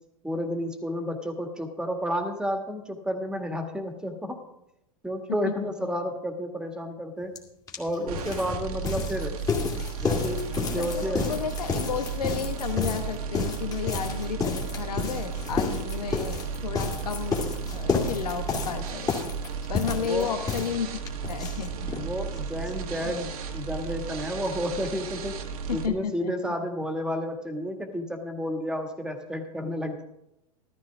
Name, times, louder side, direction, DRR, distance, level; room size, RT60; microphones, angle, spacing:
voice 1, 0.2-4.4 5.0-7.4 7.8-9.4 10.0-11.3 20.0-20.3 21.9-25.4 25.7-30.1, equal, 5° right, 5 dB, 1.9 m, -31 dB
voice 2, 5.4-5.9 10.8-17.4 17.6-19.1 19.7-22.1 23.0-23.1 25.7-26.3, left 7 dB, 85° left, 6 dB, 1.5 m, -33 dB
sound 1, 7.4-7.5 7.7-22.1 22.3-22.4 22.7-22.8 23.0-23.1, left 5 dB, 20° left, 2.4 m, -31 dB
sound 2, 8.1-25.9, right 6 dB, 70° right, 1.9 m, -34 dB
14.0 x 14.0 x 3.5 m, 0.85 s
hypercardioid pair, 115°, 20 cm